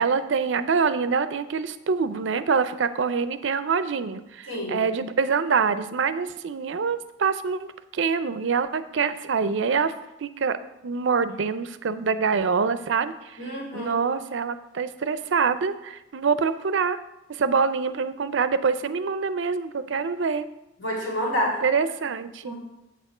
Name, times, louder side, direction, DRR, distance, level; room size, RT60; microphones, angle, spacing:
voice 1, 0.0-9.9 10.2-10.6 10.8-17.0 17.3-20.5 21.6-22.5, right 5 dB, 75° right, 13 dB, 0.5 m, -25 dB
voice 2, 4.5-4.8 13.4-14.0 20.8-21.6 22.4-22.6, equal, 70° left, -3 dB, 2.9 m, -28 dB
7.9 x 6.7 x 4.9 m, 0.92 s
head